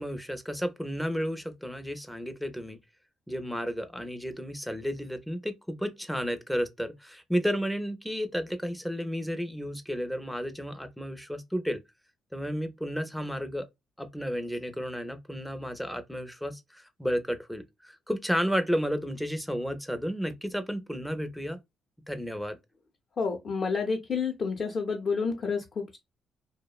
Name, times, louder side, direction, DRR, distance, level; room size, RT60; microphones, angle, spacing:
voice 1, 0.0-2.8 3.3-11.8 12.3-13.7 14.0-21.6 22.1-22.6, equal, ahead, 0.5 m, -32 dB
voice 2, 23.2-26.0, left 5 dB, 45° left, 0.6 m, -29 dB
2.6 x 2.0 x 2.3 m
cardioid pair, 90°, 0 cm